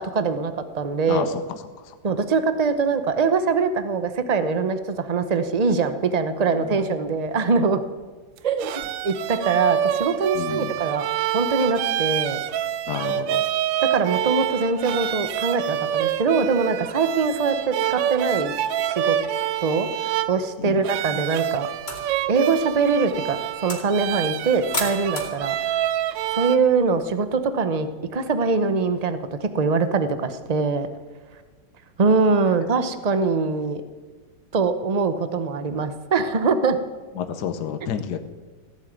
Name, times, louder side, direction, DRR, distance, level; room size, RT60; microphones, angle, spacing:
voice 1, 0.0-1.3 2.0-7.8 8.4-8.7 9.0-11.1 11.3-12.4 13.9-18.5 18.9-19.2 19.6-19.9 20.3-21.7 22.3-25.6 26.3-30.9 32.0-33.8 34.5-36.8, right 4 dB, 55° right, 9 dB, 0.4 m, -23 dB
voice 2, 1.1-1.4 6.5-6.8 10.3-10.7 12.9-13.5 20.6-20.8 37.2-38.2, left 8 dB, 60° left, 8 dB, 1.4 m, -30 dB
sound 1, 8.4-26.6, right 11 dB, 80° right, 1.3 m, -27 dB
sound 2, 21.7-27.3, left 2 dB, 25° left, 2.5 m, -37 dB
16.0 x 7.6 x 9.2 m, 1.3 s
omnidirectional pair, 2.1 m